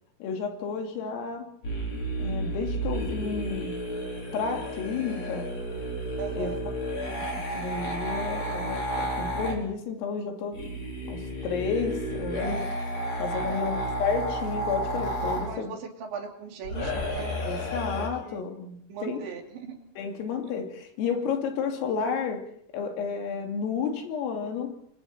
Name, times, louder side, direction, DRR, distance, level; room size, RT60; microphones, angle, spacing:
voice 1, 0.2-1.6 2.2-3.8 4.3-5.5 6.3-6.6 7.1-7.2 7.5-10.7 11.1-12.7 13.2-15.7 17.4-19.3 20.0-24.7, left 6 dB, 85° left, 3 dB, 5.4 m, -31 dB
sound 1, 1.6-9.6 10.5-15.5 16.6-18.1, right 1 dB, 35° left, 5.5 m, -32 dB
voice 2, 6.2-6.7 13.5-14.0 15.5-17.5 18.0-18.4 18.9-19.8, right 6 dB, 65° right, 2 dB, 5.0 m, -38 dB
29.5 x 25.0 x 4.4 m, 0.66 s
omnidirectional pair, 5.8 m